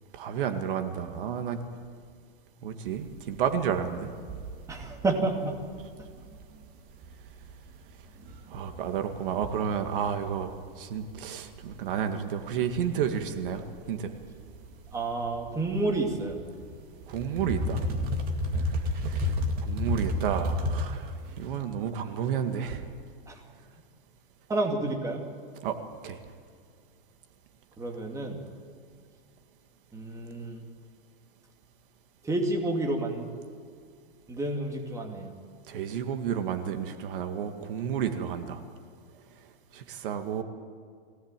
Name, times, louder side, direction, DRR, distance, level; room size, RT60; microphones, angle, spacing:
voice 1, 0.1-1.6 2.6-4.1 8.5-10.5 10.8-14.1 17.1-17.8 19.0-22.8 25.6-25.8 26.0-26.2 35.7-38.6 39.7-40.4, right 8 dB, 65° right, 7 dB, 2.1 m, -31 dB
sound 1, 2.9-21.5, left 1 dB, 30° right, 2.3 m, -33 dB
voice 2, 4.7-5.6 14.9-16.4 18.5-18.6 23.3-23.4 24.5-25.3 27.8-28.4 29.9-30.6 32.2-33.3 34.3-35.3, right 2 dB, 10° right, 2 dB, 2.5 m, -30 dB
22.5 x 17.5 x 9.1 m, 2.2 s
supercardioid pair, 150°, 29 cm